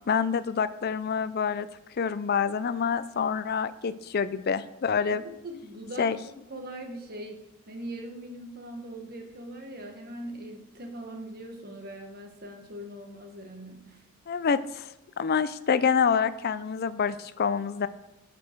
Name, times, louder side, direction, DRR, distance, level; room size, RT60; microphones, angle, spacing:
voice 1, 0.1-1.7 2.0-5.2 6.0-6.2 14.3-17.9, left 6 dB, 45° left, 15 dB, 0.4 m, -27 dB
voice 2, 5.2-14.1, right 1 dB, 45° right, 3 dB, 1.4 m, -41 dB
12.0 x 5.2 x 4.5 m, 0.94 s
head